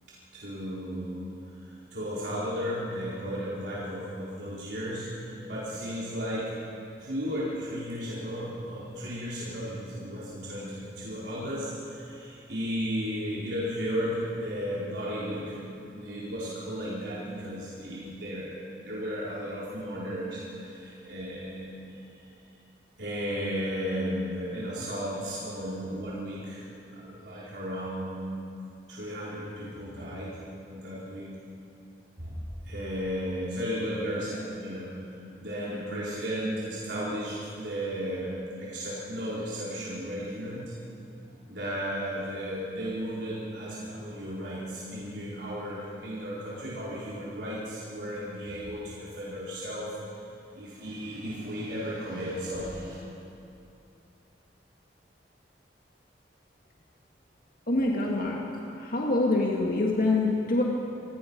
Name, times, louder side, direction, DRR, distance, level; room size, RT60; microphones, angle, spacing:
voice 1, 0.3-1.3 1.6-6.5 7.0-15.6 15.9-22.2 23.0-28.3 28.9-30.3 30.7-31.3 32.2-40.7 41.2-49.9 50.5-53.0, equal, 75° right, -8 dB, 4.4 m, -34 dB
voice 2, 57.7-58.4 58.8-60.6, left 2 dB, 55° left, -2 dB, 2.3 m, -25 dB
26.5 x 18.5 x 5.5 m, 2.7 s
head